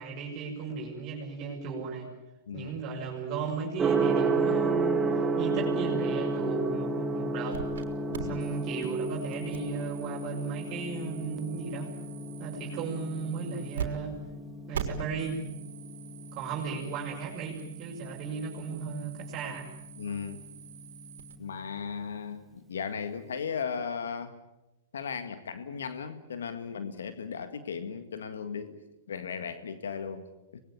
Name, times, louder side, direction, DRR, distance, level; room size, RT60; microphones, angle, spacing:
voice 1, 0.0-2.1 2.5-5.0 5.4-7.6 8.3-11.9 12.4-14.2 14.7-15.4 16.3-19.7, right 5 dB, 35° right, -3 dB, 6.1 m, -35 dB
Gong, 3.8-21.7, right 3 dB, 15° right, 2.0 m, -33 dB
sound 1, 7.5-7.8 8.1-13.9 14.1-14.2 14.7-21.4, right 8 dB, 75° right, 3.7 m, -43 dB
voice 2, 8.1-8.4 20.0-20.4 21.4-24.4 24.9-28.8 29.1-30.6, left 6 dB, 80° left, 9 dB, 1.9 m, -36 dB
25.0 x 21.0 x 8.8 m, 0.98 s
hypercardioid pair, 125°, 0 cm